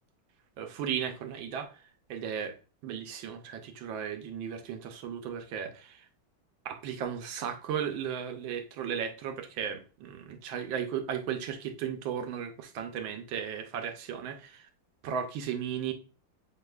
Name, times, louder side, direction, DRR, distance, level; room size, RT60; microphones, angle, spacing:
voice 1, 0.6-1.7 2.1-2.5 2.8-6.0 6.6-14.7 15.0-15.9, right 8 dB, 75° right, 6 dB, 1.4 m, -35 dB
7.8 x 2.8 x 2.3 m, 0.35 s
omnidirectional pair, 2.2 m